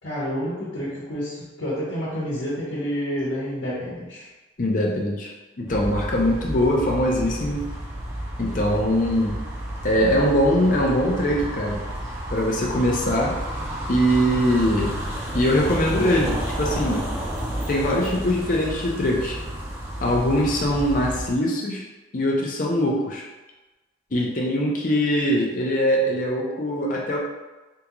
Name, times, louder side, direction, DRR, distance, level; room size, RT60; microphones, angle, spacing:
voice 1, 0.0-4.3, equal, 70° left, -9 dB, 1.0 m, -29 dB
voice 2, 4.6-5.3 5.6-7.6 8.4-9.3 9.8-11.8 12.3-13.3 13.9-15.0 15.3-17.0 17.7-19.4 20.0-21.8 22.1-23.2 24.1-27.2, equal, 45° left, -2 dB, 0.6 m, -22 dB
sound 1, 5.7-21.3, equal, 15° right, 0.6 m, -31 dB
3.5 x 2.4 x 2.9 m, 1.1 s
head